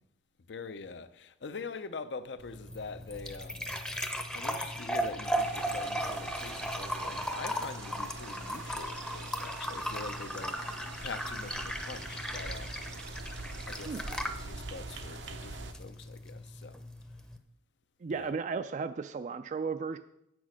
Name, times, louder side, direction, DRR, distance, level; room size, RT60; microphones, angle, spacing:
voice 1, 0.5-3.7 4.3-12.8 13.7-16.8 18.1-18.3, left 4 dB, 70° left, 0.6 m, -44 dB
sound 1, 2.4-17.4, equal, 5° left, 0.6 m, -37 dB
sound 2, 5.3-15.7, right 3 dB, 85° right, 0.8 m, -45 dB
voice 2, 18.0-20.0, right 5 dB, 40° right, 0.3 m, -34 dB
8.0 x 6.1 x 6.3 m
head